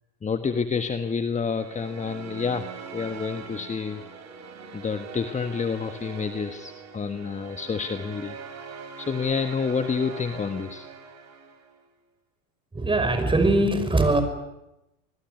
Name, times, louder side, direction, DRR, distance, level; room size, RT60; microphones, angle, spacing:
voice 1, 0.2-4.0 4.7-8.4 9.0-10.9, left 5 dB, 15° left, 9 dB, 1.5 m, -29 dB
sound 1, 1.4-11.8, right 6 dB, 40° right, 5.9 m, -42 dB
voice 2, 12.7-14.2, right 2 dB, 10° right, 8 dB, 5.7 m, -21 dB
26.0 x 21.0 x 9.5 m, 0.92 s
hypercardioid pair, 85°, 41 cm